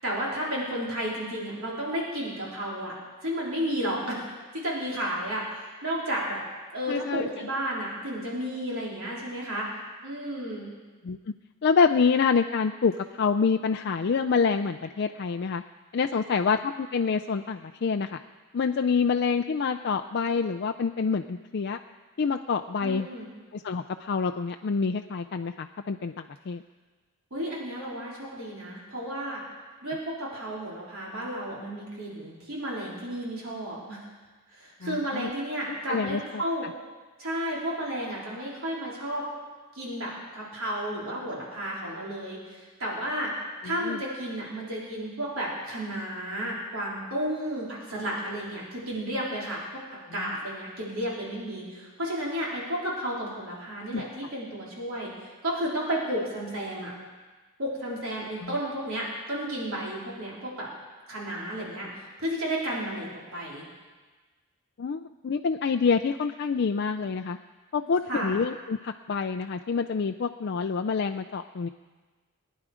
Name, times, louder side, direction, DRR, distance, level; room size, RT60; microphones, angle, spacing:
voice 1, 0.0-3.0 3.2-4.2 4.5-5.5 5.8-6.4 6.7-9.7 10.0-10.7 22.8-23.3 27.3-29.4 29.8-34.0 34.5-36.7 37.2-39.2 39.7-43.3 43.6-56.9 57.6-60.7 61.1-63.7 68.1-68.3, equal, 65° right, -4 dB, 3.9 m, -32 dB
voice 2, 6.9-7.3 11.0-11.2 11.6-15.6 15.9-18.2 18.5-21.8 22.2-23.1 23.5-26.6 34.8-35.3 35.9-36.4 43.8-44.0 53.9-54.0 58.4-58.5 64.8-67.4 67.7-71.7, left 5 dB, 50° left, 6 dB, 0.4 m, -27 dB
21.0 x 10.5 x 5.0 m, 1.3 s
head